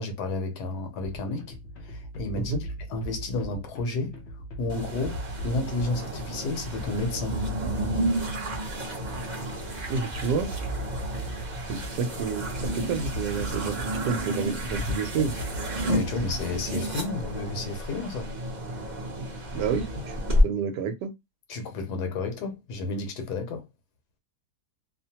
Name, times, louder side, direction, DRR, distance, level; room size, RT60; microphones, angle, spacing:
voice 1, 0.0-1.5 1.8-2.5 2.9-4.2 4.6-7.4 15.8-18.3 21.5-23.7, left 3 dB, 75° left, 1.2 m, -31 dB
sound 1, 1.0-16.9, right 1 dB, 55° left, 0.7 m, -39 dB
sound 2, 4.7-20.4, equal, 40° right, 0.6 m, -31 dB
voice 2, 9.9-10.5 11.7-15.3 19.5-20.2 20.4-21.1, right 5 dB, 90° right, 1.2 m, -29 dB
2.8 x 2.1 x 2.7 m
omnidirectional pair, 1.8 m